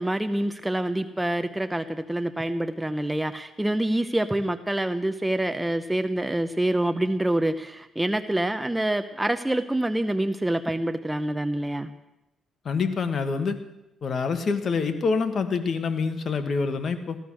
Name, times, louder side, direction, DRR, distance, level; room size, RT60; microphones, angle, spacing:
voice 1, 0.0-11.9, right 1 dB, 10° right, 8 dB, 0.7 m, -26 dB
voice 2, 12.6-13.6 14.0-17.2, left 5 dB, 50° left, 8 dB, 1.6 m, -26 dB
16.0 x 12.0 x 6.3 m, 0.94 s
cardioid pair, 90°, 0 cm